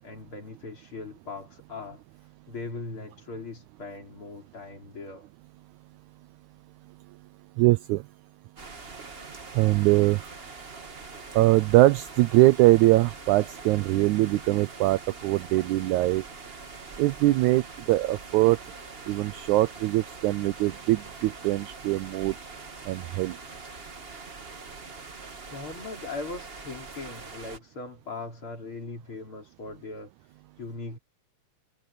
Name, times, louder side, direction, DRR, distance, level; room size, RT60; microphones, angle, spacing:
voice 1, 0.0-2.0 2.5-5.3 25.5-31.0, left 3 dB, 35° left, 4.9 m, -40 dB
voice 2, 7.6-8.0 9.5-10.2 11.3-16.2 17.0-18.6 19.1-22.3 22.9-23.4, right 18 dB, 90° right, 1.7 m, -22 dB
sound 1, 8.6-27.6, right 4 dB, 60° right, 0.6 m, -43 dB
omnidirectional pair, 4.0 m